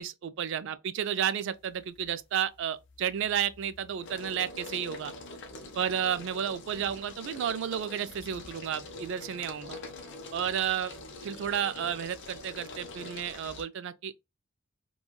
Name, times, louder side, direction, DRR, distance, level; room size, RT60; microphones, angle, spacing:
voice 1, 0.0-5.1 5.8-9.8 10.3-10.9 11.2-14.2, right 9 dB, 60° right, 0.3 m, -32 dB
sound 1, 1.6-2.1 2.5-13.6, left 2 dB, 60° left, 0.5 m, -45 dB
3.1 x 2.2 x 2.3 m
head